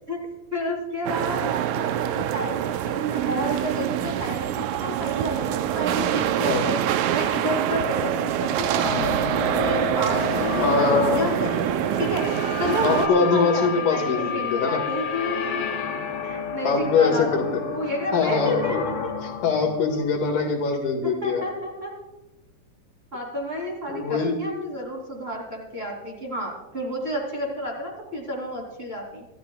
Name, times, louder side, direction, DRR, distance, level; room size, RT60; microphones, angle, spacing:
voice 1, 0.5-6.8 7.1-12.3 12.6-19.1 21.0-21.9 23.1-29.3, equal, 20° right, -1 dB, 2.8 m, -30 dB
sound 1, 1.1-13.1, right 10 dB, 80° right, 1.9 m, -25 dB
sound 2, 8.8-20.9, left 6 dB, 45° left, 2.4 m, -31 dB
voice 2, 10.6-11.2 12.8-14.8 16.6-17.6 18.1-18.8 19.4-21.4 23.9-24.4, left 5 dB, 80° left, 3 dB, 3.5 m, -23 dB
26.0 x 12.5 x 2.3 m, 1.0 s
omnidirectional pair, 3.7 m